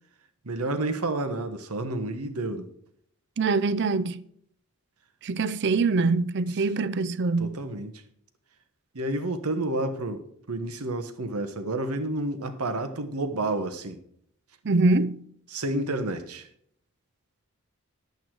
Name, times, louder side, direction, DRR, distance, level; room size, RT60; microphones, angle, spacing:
voice 1, 0.4-2.7 7.4-8.0 8.9-14.0 15.5-16.5, right 2 dB, 85° right, 1.2 m, -30 dB
voice 2, 3.4-4.2 5.2-7.6 14.6-15.2, right 3 dB, 50° right, 0.5 m, -24 dB
11.0 x 8.2 x 4.6 m
head